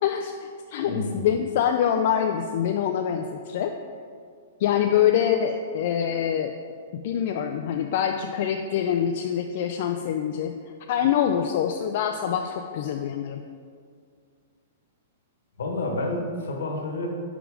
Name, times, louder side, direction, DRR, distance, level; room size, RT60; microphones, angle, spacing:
voice 1, 0.0-3.7 4.6-6.5 6.9-10.5 10.9-13.4, left 9 dB, 55° left, 5 dB, 0.3 m, -25 dB
voice 2, 0.7-1.2 15.6-17.1, left 2 dB, 80° left, 1 dB, 1.2 m, -29 dB
5.0 x 4.9 x 4.9 m, 2.1 s
hypercardioid pair, 125°, 0 cm